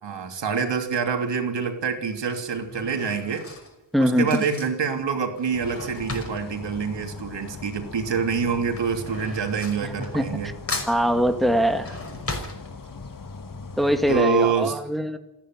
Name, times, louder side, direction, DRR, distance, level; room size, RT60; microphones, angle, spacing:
voice 1, 0.0-3.5 4.0-10.5 14.1-14.8, right 6 dB, 90° right, 4 dB, 3.1 m, -26 dB
Drawer open or close / Cutlery silverware, 0.7-1.1 1.9-7.8 8.1-10.4 10.7-13.2 13.6-13.7 13.9-14.0, left 2 dB, 35° left, 5.7 m, -37 dB
voice 2, 3.9-4.5 10.1-10.4 10.9-12.0 13.8-15.2, equal, ahead, 6 dB, 1.9 m, -22 dB
sound 1, 5.5-14.2, left 4 dB, 50° left, 1.8 m, -40 dB
28.5 x 10.5 x 9.3 m, 0.97 s
wide cardioid pair, 105°, 42 cm